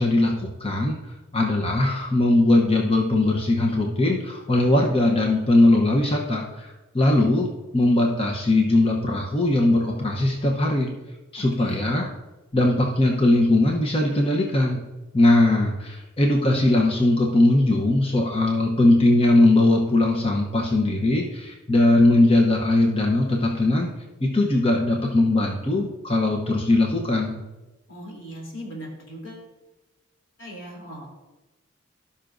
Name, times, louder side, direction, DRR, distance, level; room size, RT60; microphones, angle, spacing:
voice 1, 0.0-7.5 7.7-10.9 11.3-12.1 12.5-14.8 15.1-23.9 24.2-27.4, left 2 dB, 30° left, 0 dB, 0.8 m, -20 dB
voice 2, 11.4-11.8 27.9-29.5 30.4-31.1, equal, 70° left, -1 dB, 3.1 m, -39 dB
17.0 x 5.8 x 2.6 m, 1.1 s
head